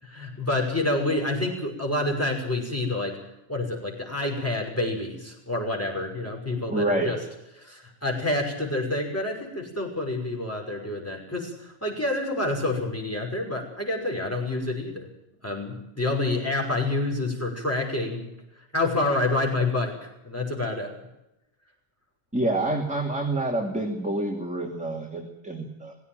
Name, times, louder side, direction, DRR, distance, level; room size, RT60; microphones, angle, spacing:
voice 1, 0.0-3.2 3.5-7.2 7.6-15.1 15.4-18.3 18.7-20.9, left 2 dB, 10° left, 0 dB, 5.7 m, -28 dB
voice 2, 6.7-7.1 22.3-25.9, right 2 dB, 5° right, 0 dB, 2.7 m, -27 dB
18.5 x 16.5 x 9.0 m, 0.90 s
omnidirectional pair, 1.3 m